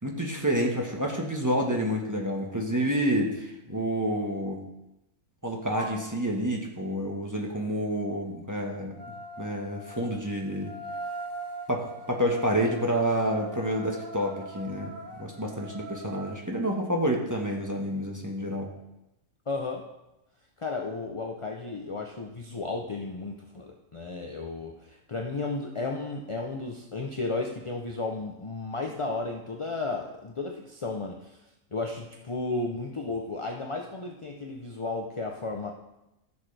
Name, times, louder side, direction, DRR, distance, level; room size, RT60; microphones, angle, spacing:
voice 1, 0.0-4.6 5.4-8.9 9.4-10.7 11.7-18.7, equal, 15° right, -1 dB, 1.3 m, -29 dB
sound 1, 5.8-6.0 8.9-16.4, right 2 dB, 80° right, 2.1 m, -41 dB
voice 2, 19.5-19.9 20.6-31.3 31.7-35.7, left 3 dB, 35° left, 1 dB, 0.6 m, -33 dB
15.0 x 6.2 x 3.4 m, 0.93 s
omnidirectional pair, 1.4 m